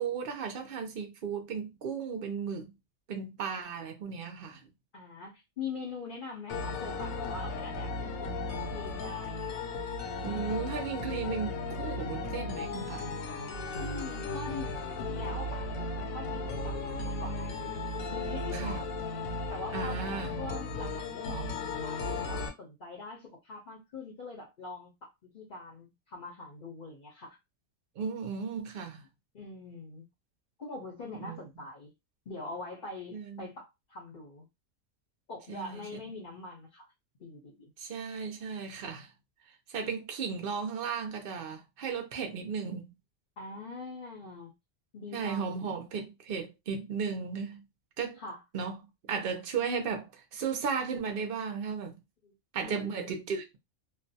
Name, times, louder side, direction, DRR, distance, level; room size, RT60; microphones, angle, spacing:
voice 1, 0.0-2.7 3.1-4.6 10.2-13.2 18.5-18.8 19.7-20.3 28.0-29.0 31.2-31.4 33.1-33.5 35.5-35.8 37.8-39.1 39.7-42.9 45.1-47.6 48.0-48.2 48.5-48.8 49.1-52.0 52.5-53.6, right 6 dB, 60° right, 0.6 m, -35 dB
voice 2, 4.9-8.3 8.7-9.4 13.8-17.8 18.1-18.8 19.5-27.4 29.3-30.1 30.6-31.9 32.3-34.5 35.3-36.9 37.2-37.7 43.4-44.5 44.9-45.6 48.2-48.4 52.2-53.1, left 3 dB, 45° left, 0.7 m, -43 dB
sound 1, 6.5-22.5, left 2 dB, 75° left, 1.0 m, -35 dB
2.5 x 2.2 x 2.6 m
omnidirectional pair, 1.5 m